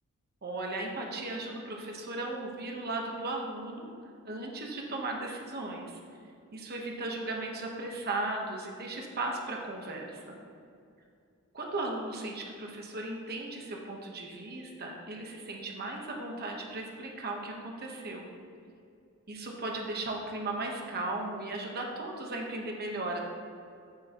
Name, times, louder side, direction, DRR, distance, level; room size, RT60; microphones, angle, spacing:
voice 1, 0.4-3.9 4.2-6.0 6.5-10.4 11.5-18.3 19.3-23.2, right 2 dB, 45° right, 0 dB, 1.2 m, -36 dB
15.0 x 7.6 x 3.0 m, 2.5 s
head